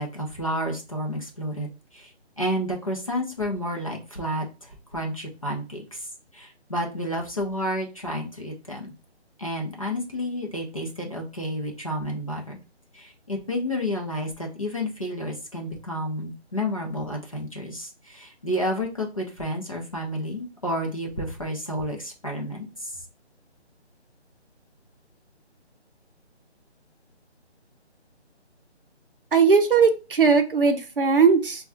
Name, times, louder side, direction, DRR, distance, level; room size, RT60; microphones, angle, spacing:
voice 1, 0.0-8.9 9.4-12.6 12.9-23.0, equal, 30° left, 0 dB, 0.6 m, -31 dB
voice 2, 29.3-31.6, right 5 dB, 55° right, 6 dB, 0.6 m, -19 dB
4.6 x 2.3 x 2.6 m, 0.30 s
figure-of-eight pair, 170°, 34 cm